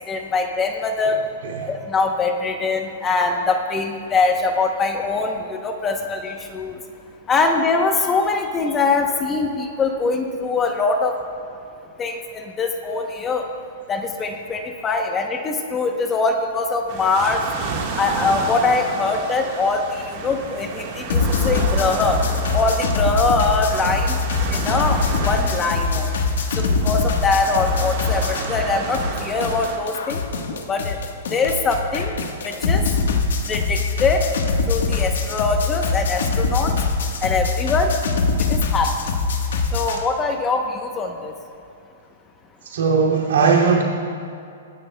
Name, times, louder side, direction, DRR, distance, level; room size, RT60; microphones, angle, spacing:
voice 1, 0.1-1.2 1.6-6.8 7.3-11.1 12.0-13.4 13.9-17.4 18.0-22.2 22.5-24.1 24.5-26.1 26.6-30.2 30.7-31.0 31.3-32.2 32.4-32.8 33.5-34.2 34.7-36.7 37.2-37.9 38.4-38.9 39.7-41.3, left 3 dB, 15° left, 4 dB, 0.7 m, -22 dB
sound 1, 16.9-29.8, right 4 dB, 40° right, 1.4 m, -31 dB
sound 2, 21.1-28.7 28.9-40.0, left 4 dB, 85° left, 1.2 m, -23 dB
voice 2, 42.7-43.8, right 5 dB, 85° right, -2 dB, 2.3 m, -17 dB
23.0 x 10.0 x 2.2 m, 2.5 s
hypercardioid pair, 160°, 0 cm